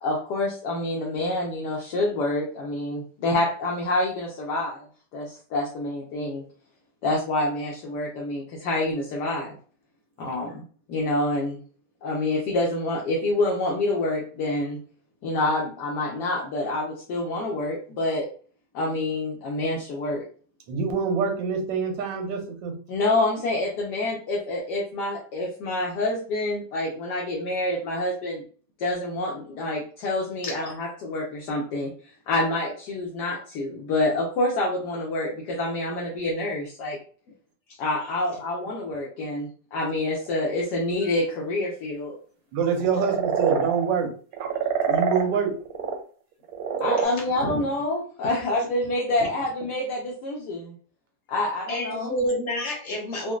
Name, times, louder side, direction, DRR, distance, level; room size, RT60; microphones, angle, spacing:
voice 1, 0.0-4.9 5.1-6.4 7.0-9.5 10.2-10.6 10.9-11.6 12.0-14.8 15.2-18.3 18.7-20.2 22.9-28.4 28.8-31.9 32.3-37.0 37.8-42.2 46.8-50.7 51.3-52.1, left 2 dB, 75° left, -3 dB, 1.2 m, -27 dB
voice 2, 20.7-22.8 42.5-44.1 44.9-45.5, right 6 dB, 90° right, 4 dB, 1.4 m, -25 dB
sound 1, 40.1-40.4 42.6-43.9 44.3-46.0 46.5-47.0, right 7 dB, 70° right, 1.0 m, -25 dB
voice 3, 47.0-47.6 51.7-53.3, equal, 45° left, -1 dB, 1.1 m, -29 dB
4.0 x 2.1 x 2.3 m, 0.43 s
omnidirectional pair, 1.9 m